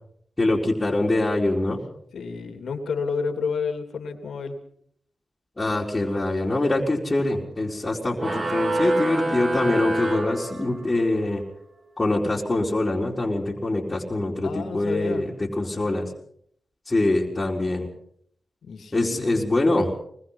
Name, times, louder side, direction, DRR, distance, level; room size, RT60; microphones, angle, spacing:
voice 1, 0.4-1.8 5.6-11.4 12.0-16.1 16.9-17.9 18.9-19.9, left 2 dB, 25° left, -3 dB, 4.4 m, -24 dB
voice 2, 2.1-4.6 14.4-15.3 18.6-19.5, left 5 dB, 80° left, 5 dB, 3.0 m, -30 dB
sound 1, 8.2-11.1, right 1 dB, 45° right, 4.1 m, -27 dB
24.0 x 20.5 x 5.9 m, 0.67 s
cardioid pair, 55°, 0 cm